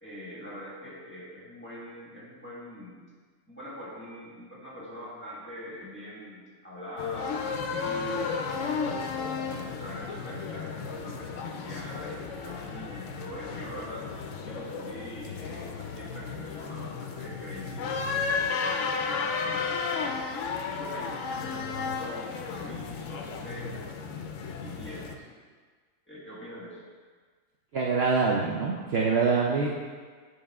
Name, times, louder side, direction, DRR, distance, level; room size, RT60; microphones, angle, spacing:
voice 1, 0.0-3.1 3.5-8.9 9.4-14.1 14.4-20.2 20.6-23.8 24.6-25.4 26.1-26.8, equal, 10° left, -7 dB, 1.4 m, -43 dB
sound 1, 7.0-25.2, left 5 dB, 70° left, 0.9 m, -33 dB
voice 2, 27.7-29.7, right 4 dB, 60° right, -2 dB, 0.7 m, -25 dB
8.7 x 3.5 x 3.5 m, 1.5 s
omnidirectional pair, 1.4 m